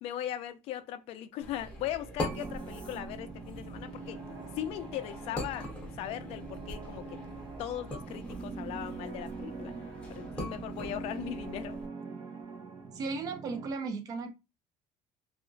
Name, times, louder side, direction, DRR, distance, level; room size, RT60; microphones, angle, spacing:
voice 1, 0.0-4.2 4.6-5.7 6.0-7.1 7.6-9.7 10.1-11.8, left 12 dB, 55° left, 0.4 m, -38 dB
sound 1, 1.4-11.9, left 1 dB, 10° left, 0.6 m, -42 dB
sound 2, 2.2-13.7, right 4 dB, 80° right, 0.7 m, -43 dB
voice 2, 12.9-14.3, right 4 dB, 30° right, 0.4 m, -35 dB
2.8 x 2.4 x 2.5 m
cardioid pair, 175°, 12 cm